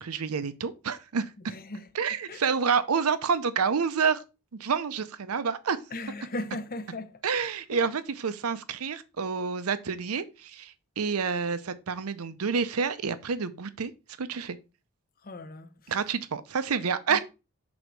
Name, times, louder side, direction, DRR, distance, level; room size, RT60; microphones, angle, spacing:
voice 1, 0.0-1.3 1.9-4.2 4.6-5.8 7.2-13.9 14.2-14.6 15.9-17.2, right 5 dB, 75° right, 0.6 m, -28 dB
voice 2, 1.5-1.9 2.3-2.4 5.9-7.2 7.7-7.8 15.2-15.7 17.1-17.2, left 2 dB, 45° left, 0.7 m, -37 dB
6.2 x 3.9 x 4.6 m
head